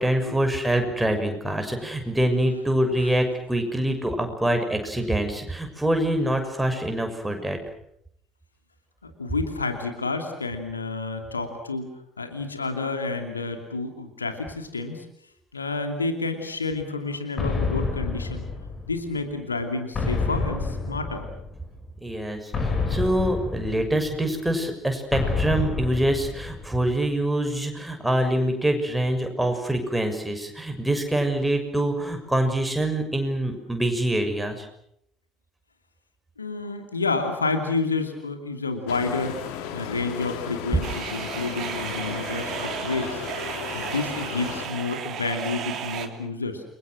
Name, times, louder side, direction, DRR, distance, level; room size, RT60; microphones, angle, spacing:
voice 1, 0.0-7.6 22.0-34.6, right 1 dB, 5° right, 4 dB, 6.5 m, -25 dB
voice 2, 9.0-11.9 12.2-15.1 15.5-18.5 18.9-21.3 36.4-46.6, left 3 dB, 85° left, 6 dB, 2.7 m, -30 dB
sound 1, 17.4-19.1 19.9-21.7 22.5-24.3 25.1-26.9, left 3 dB, 35° left, 6.9 m, -28 dB
sound 2, 38.9-44.7, left 8 dB, 60° left, 3.0 m, -35 dB
sound 3, 40.8-46.1, right 9 dB, 45° right, 3.2 m, -34 dB
30.0 x 23.5 x 6.4 m, 0.74 s
figure-of-eight pair, 60°, 0 cm